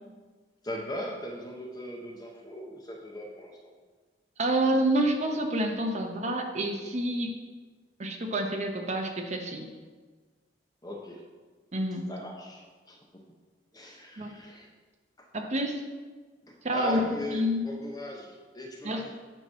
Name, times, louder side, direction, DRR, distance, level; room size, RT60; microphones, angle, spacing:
voice 1, 0.6-3.7 10.8-11.2 12.1-13.2 13.7-14.7 15.2-15.3 16.5-19.2, left 1 dB, 20° left, -1 dB, 0.7 m, -39 dB
voice 2, 4.4-7.4 8.0-9.7 11.7-12.1 14.2-14.3 15.3-15.9 16.6-17.7 18.8-19.0, right 1 dB, 40° right, 3 dB, 0.8 m, -28 dB
8.8 x 3.0 x 6.1 m, 1.4 s
head